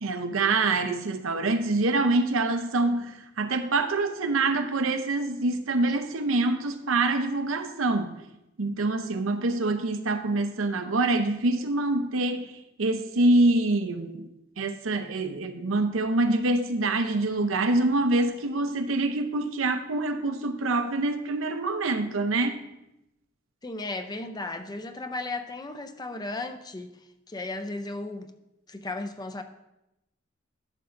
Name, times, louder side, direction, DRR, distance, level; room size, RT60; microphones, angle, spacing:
voice 1, 0.0-8.2 8.6-12.5 12.8-14.3 14.6-22.6, right 2 dB, 80° right, 0.7 m, -25 dB
voice 2, 23.6-26.9 27.3-28.3 28.7-29.4, left 2 dB, 20° left, 0.5 m, -35 dB
12.0 x 6.8 x 2.6 m
head